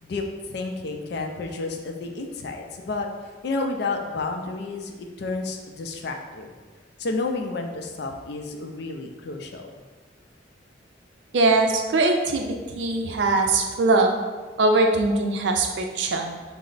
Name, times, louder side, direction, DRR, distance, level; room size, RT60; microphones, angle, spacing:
voice 1, 0.0-3.1 3.4-6.5 7.0-9.7, left 3 dB, 60° left, 3 dB, 0.4 m, -31 dB
voice 2, 11.3-14.2 14.6-16.3, right 2 dB, 75° right, 3 dB, 0.5 m, -21 dB
4.3 x 2.0 x 3.9 m, 1.4 s
head